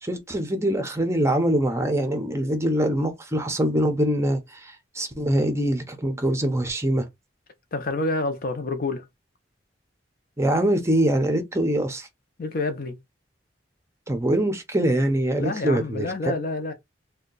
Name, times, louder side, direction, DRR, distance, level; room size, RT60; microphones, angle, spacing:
voice 1, 0.0-7.1 10.4-12.1 14.1-16.1, right 1 dB, 15° right, 0.6 m, -23 dB
voice 2, 7.7-9.0 12.4-13.0 15.4-16.7, left 2 dB, 50° left, 0.6 m, -28 dB
2.7 x 2.2 x 3.8 m
head